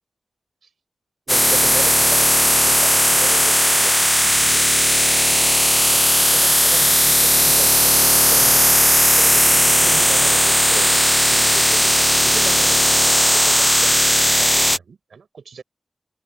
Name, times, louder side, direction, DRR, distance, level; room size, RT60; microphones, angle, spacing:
sound 1, 1.3-14.8, equal, ahead, 1.1 m, -16 dB
voice 1, 1.3-4.7 5.3-11.0 11.3-15.6, right 5 dB, 85° right, 7.7 m, -36 dB
cardioid pair, 40°, 0 cm